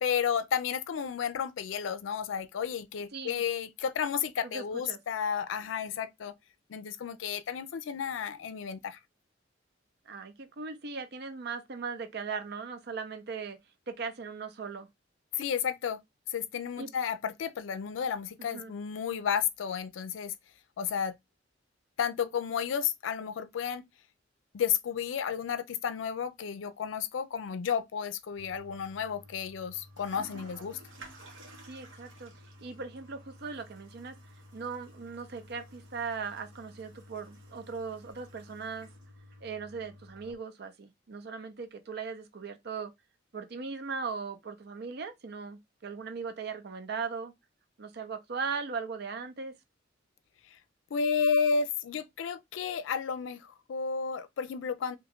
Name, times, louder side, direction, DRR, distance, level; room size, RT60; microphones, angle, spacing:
voice 1, 0.0-6.3 6.7-9.0 15.3-16.0 16.3-20.3 20.8-21.1 22.0-23.9 24.5-30.8 50.9-55.0, left 7 dB, 85° left, 0.4 m, -32 dB
voice 2, 3.1-3.4 4.4-5.0 10.1-13.6 13.9-14.9 16.8-16.9 18.4-18.7 31.7-32.3 32.6-34.1 34.5-38.9 39.4-42.9 43.3-47.3 47.8-49.5, right 5 dB, 60° right, 0.6 m, -38 dB
Toilet flush, 28.4-40.3, equal, 85° right, 1.1 m, -52 dB
2.9 x 2.3 x 3.5 m
head